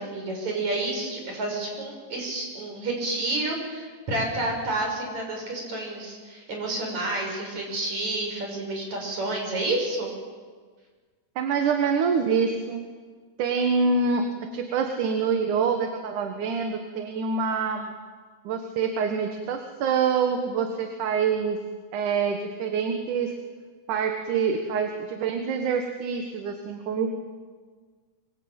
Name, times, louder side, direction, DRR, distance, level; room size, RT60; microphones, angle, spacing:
voice 1, 0.0-10.1, right 2 dB, 60° right, 1 dB, 7.5 m, -30 dB
voice 2, 11.4-12.9 13.4-17.9 18.4-21.6 21.9-23.3 23.9-27.2, right 5 dB, 80° right, 5 dB, 3.0 m, -26 dB
24.5 x 22.0 x 8.9 m, 1.5 s
omnidirectional pair, 3.6 m